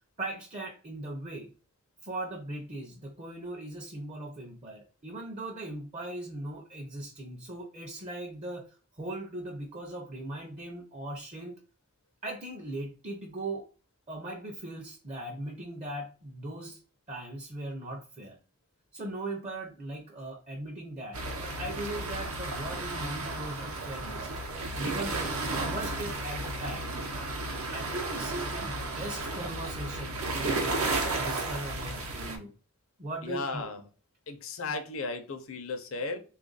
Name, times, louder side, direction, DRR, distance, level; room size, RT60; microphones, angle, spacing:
voice 1, 0.2-1.5 2.0-8.7 9.0-11.5 12.2-13.7 14.1-16.8 17.1-18.4 18.9-24.3 24.7-25.3 25.6-26.9 27.7-32.5 33.0-33.7, right 1 dB, 30° right, 1 dB, 0.5 m, -39 dB
sound 1, 21.1-32.4, right 2 dB, 75° right, 0.7 m, -33 dB
voice 2, 33.2-33.8 34.3-36.2, left 3 dB, 65° left, 6 dB, 0.6 m, -35 dB
3.4 x 2.4 x 3.8 m, 0.36 s
head